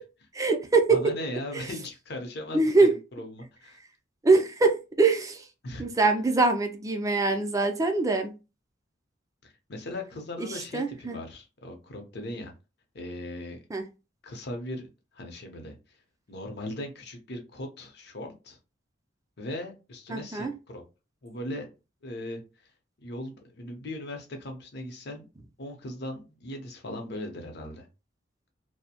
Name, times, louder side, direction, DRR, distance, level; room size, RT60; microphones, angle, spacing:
voice 1, 0.3-1.0 1.5-1.7 2.5-2.9 4.2-5.5 5.8-8.3 10.4-11.2 13.7-13.8 20.1-20.5, right 3 dB, 15° right, 5 dB, 0.4 m, -23 dB
voice 2, 0.9-2.9 3.2-3.8 5.6-5.9 9.4-12.5 12.9-13.6 14.2-14.9 15.1-16.0 16.3-18.6 19.4-20.8 21.2-21.7 22.0-22.4 23.0-25.3 25.6-27.9, left 1 dB, 60° left, 3 dB, 0.7 m, -38 dB
2.6 x 2.0 x 2.8 m, 0.29 s
head